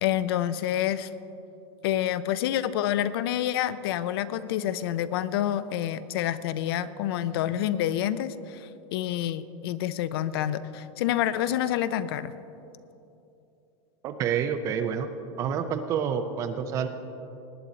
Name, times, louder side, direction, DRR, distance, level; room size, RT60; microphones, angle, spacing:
voice 1, 0.0-1.1 1.8-12.3, left 11 dB, 50° left, 14 dB, 0.4 m, -28 dB
voice 2, 14.0-15.1 15.4-16.9, right 7 dB, 20° right, 9 dB, 0.4 m, -28 dB
19.0 x 9.4 x 3.9 m, 2.8 s
supercardioid pair, 175°, 16 cm